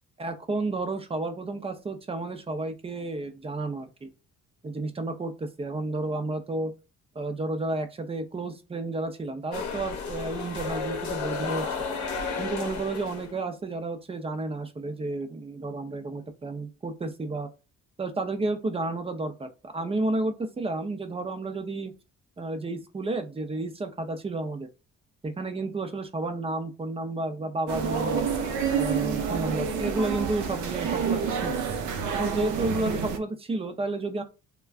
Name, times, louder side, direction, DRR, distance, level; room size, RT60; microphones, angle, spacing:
voice 1, 0.2-4.1 4.6-6.7 7.1-11.7 12.4-17.5 18.0-21.9 22.4-24.7 25.2-28.2 28.7-31.6 32.1-34.2, right 2 dB, 20° right, 8 dB, 0.5 m, -31 dB
sound 1, 9.5-13.3, left 4 dB, 70° left, 1.0 m, -32 dB
sound 2, 27.7-33.2, right 6 dB, 80° right, 0.6 m, -28 dB
3.4 x 2.2 x 2.4 m, 0.30 s
cardioid pair, 90°, 30 cm